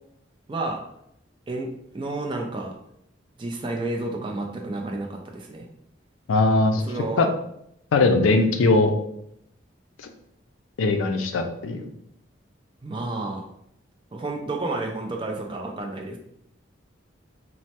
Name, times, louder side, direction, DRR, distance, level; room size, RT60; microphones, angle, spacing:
voice 1, 0.5-0.8 1.5-2.8 3.4-5.7 6.8-7.3 12.8-13.5 14.1-16.2, right 2 dB, 25° right, 1 dB, 0.3 m, -31 dB
voice 2, 6.3-6.8 7.2-7.3 7.9-8.9 10.8-11.9, left 3 dB, 80° left, 6 dB, 0.4 m, -20 dB
3.1 x 2.0 x 2.8 m, 0.75 s
head